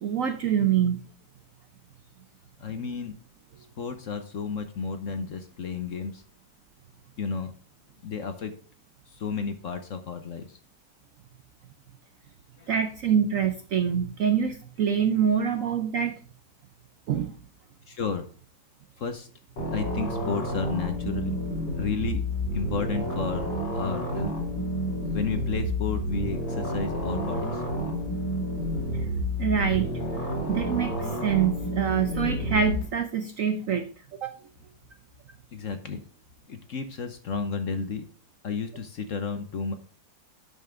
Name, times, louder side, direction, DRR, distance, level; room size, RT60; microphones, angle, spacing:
voice 1, 0.0-1.0 12.7-16.1 17.1-17.3 29.4-29.9 30.5-33.9 34.2-34.3, right 7 dB, 65° right, 8 dB, 0.8 m, -25 dB
voice 2, 2.6-3.1 3.8-6.2 7.2-7.5 8.0-8.5 9.1-10.6 12.6-12.7 17.9-18.2 19.0-19.3 19.7-21.4 21.8-22.2 22.5-23.5 23.7-24.3 25.1-27.6 35.5-36.0 36.5-38.0 38.4-39.7, left 5 dB, 55° left, 8 dB, 1.0 m, -32 dB
sound 1, 19.6-32.8, equal, 70° left, 3.6 m, -30 dB
11.5 x 5.6 x 3.7 m, 0.41 s
omnidirectional pair, 2.0 m